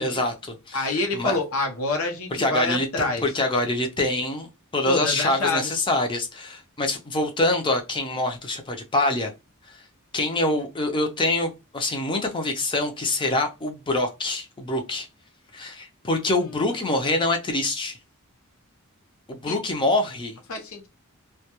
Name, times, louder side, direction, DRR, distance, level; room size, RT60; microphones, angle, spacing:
voice 1, 0.0-1.4 2.4-2.9 3.2-9.3 10.1-15.1 15.5-18.0 19.3-20.3, left 2 dB, 20° left, 0.5 m, -25 dB
voice 2, 0.7-3.3 4.9-5.8 19.5-19.6 20.5-20.9, left 2 dB, 65° left, 0.6 m, -27 dB
2.2 x 2.2 x 2.8 m
head